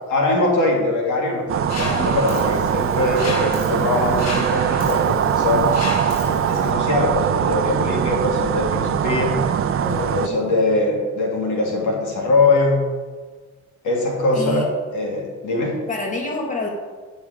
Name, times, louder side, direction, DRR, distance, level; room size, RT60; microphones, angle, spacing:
voice 1, 0.1-5.7 6.5-9.3 10.1-12.8 13.8-15.8, left 2 dB, 75° left, -1 dB, 2.2 m, -21 dB
sound 1, 1.5-10.3, right 8 dB, 45° right, 0.5 m, -21 dB
Mechanisms, 1.7-6.7, left 3 dB, 60° left, 1.2 m, -33 dB
voice 2, 9.8-10.7 14.3-14.7 15.9-16.7, left 2 dB, 25° left, 0 dB, 1.7 m, -28 dB
9.7 x 5.4 x 4.9 m, 1.4 s
cardioid pair, 90°, 30 cm